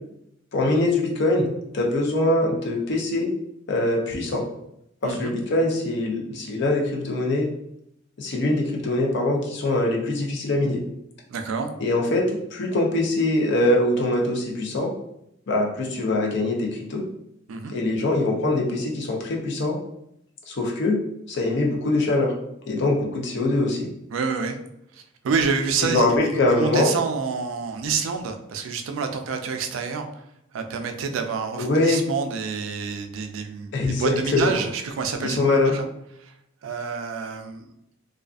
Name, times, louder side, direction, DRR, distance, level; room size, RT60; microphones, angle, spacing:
voice 1, 0.5-1.5 1.7-3.3 3.7-4.4 5.0-7.5 8.2-10.8 11.8-14.9 15.5-17.0 17.7-19.7 20.5-21.0 21.3-22.3 22.7-23.9 25.9-26.9 31.6-32.0 33.7-34.6 35.2-35.7, left 2 dB, 60° left, 0 dB, 0.5 m, -23 dB
voice 2, 5.0-5.3 11.3-11.7 17.5-17.7 24.1-24.6 25.2-30.1 30.5-35.4 35.7-35.9 36.2-36.3 36.6-37.7, right 5 dB, 80° right, 6 dB, 0.4 m, -28 dB
2.4 x 2.4 x 2.3 m, 0.79 s
head